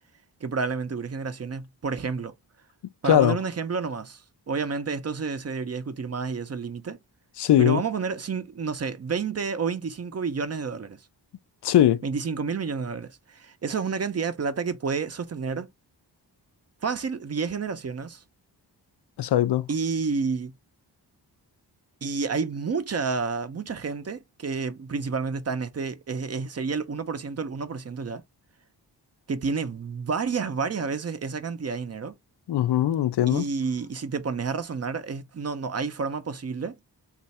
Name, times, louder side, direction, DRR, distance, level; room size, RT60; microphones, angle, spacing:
voice 1, 0.4-2.3 3.0-7.0 7.6-11.0 12.0-15.7 16.8-18.2 19.7-20.5 22.0-28.2 29.3-32.1 33.3-36.8, right 5 dB, 40° right, 0.5 m, -30 dB
voice 2, 7.4-7.8 11.6-12.0 19.2-19.7 32.5-33.4, left 12 dB, 75° left, 0.5 m, -20 dB
3.1 x 2.4 x 4.1 m
wide cardioid pair, 90°, 41 cm